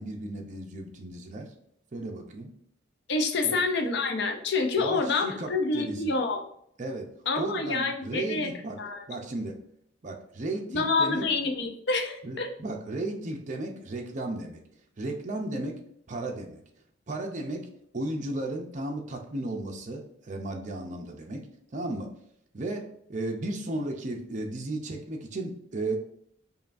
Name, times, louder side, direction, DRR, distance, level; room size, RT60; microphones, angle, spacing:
voice 1, 0.0-1.5 1.9-2.5 3.4-3.6 4.8-6.2 6.8-7.1 7.4-8.8 9.1-9.6 10.0-11.3 12.2-14.6 15.0-15.8 16.1-16.6 17.1-17.7 17.9-21.4 21.7-22.1 22.5-26.0, right 2 dB, 40° right, 2 dB, 0.6 m, -34 dB
voice 2, 3.1-6.4 7.3-8.5 8.8-9.1 10.7-12.5, left 3 dB, 60° left, 5 dB, 0.5 m, -27 dB
5.5 x 2.3 x 2.5 m, 0.70 s
head